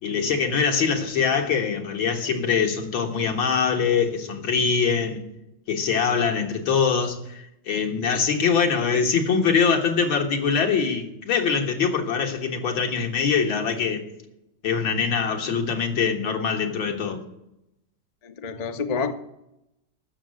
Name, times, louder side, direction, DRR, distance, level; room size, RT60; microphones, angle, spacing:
voice 1, 0.0-5.2 5.7-14.0 14.6-17.2, left 6 dB, 85° left, 2.4 m, -23 dB
voice 2, 18.2-19.1, left 5 dB, 50° left, 0.4 m, -28 dB
14.5 x 6.5 x 7.8 m
omnidirectional pair, 2.1 m